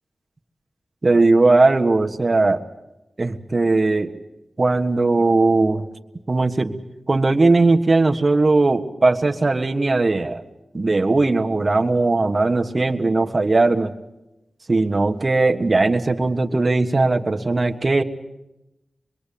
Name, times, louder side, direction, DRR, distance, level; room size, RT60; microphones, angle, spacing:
voice 1, 1.0-2.6 3.2-4.1 4.6-5.9 6.3-6.7 7.1-10.4 10.7-13.9 14.7-18.0, right 3 dB, 40° right, 4 dB, 1.5 m, -18 dB
26.0 x 21.5 x 8.6 m, 0.94 s
wide cardioid pair, 80°, 0 cm